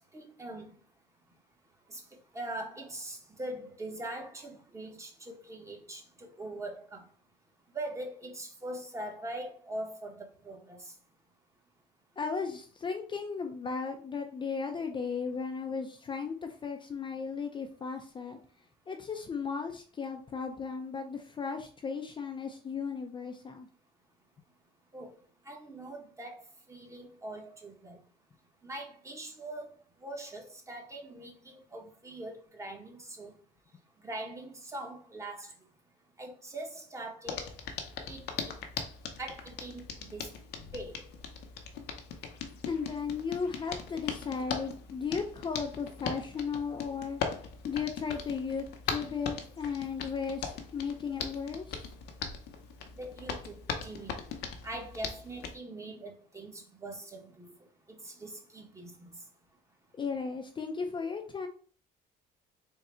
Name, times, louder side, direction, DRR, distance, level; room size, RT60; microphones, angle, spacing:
voice 1, 0.1-0.7 1.9-2.0 2.3-7.0 7.7-10.9 24.9-25.1 25.5-26.4 26.7-28.0 28.6-29.7 30.0-33.3 34.0-35.5 36.2-37.5 38.1-38.2 39.2-40.3 40.7-41.1 53.0-54.2 54.6-57.5 58.0-59.2, right 1 dB, 15° right, 1.0 m, -42 dB
voice 2, 12.2-18.4 18.9-23.7 42.7-47.2 47.6-51.8 60.0-61.5, left 5 dB, 30° left, 0.5 m, -35 dB
Hands, 37.3-55.5, left 6 dB, 80° left, 0.7 m, -40 dB
3.8 x 2.2 x 4.2 m
cardioid pair, 110°, 17 cm